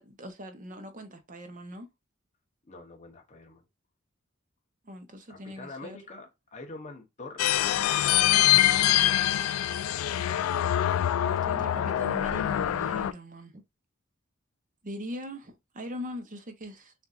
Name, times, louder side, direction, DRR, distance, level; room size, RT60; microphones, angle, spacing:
voice 1, 0.0-1.9 4.8-6.0 7.8-7.9 11.2-13.6 14.8-16.9, left 1 dB, 40° right, 0.9 m, -41 dB
voice 2, 2.7-3.6 5.3-8.4 9.7-9.8, left 2 dB, 35° left, 0.9 m, -45 dB
sound 1, 7.4-13.1, left 12 dB, 85° left, 0.3 m, -24 dB
6.7 x 2.6 x 2.4 m
head